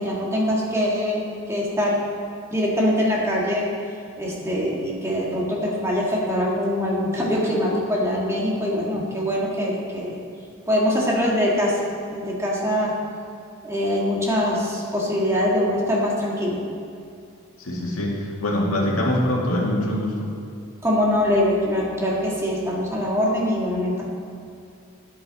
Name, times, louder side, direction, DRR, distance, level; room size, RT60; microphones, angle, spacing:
voice 1, 0.0-2.0 2.5-3.6 4.2-10.2 10.7-11.8 12.1-12.9 13.6-16.6 20.8-24.0, equal, 15° right, -4 dB, 1.9 m, -23 dB
voice 2, 17.6-20.3, left 1 dB, 75° left, -2 dB, 2.0 m, -24 dB
12.5 x 10.5 x 4.2 m, 2.5 s
head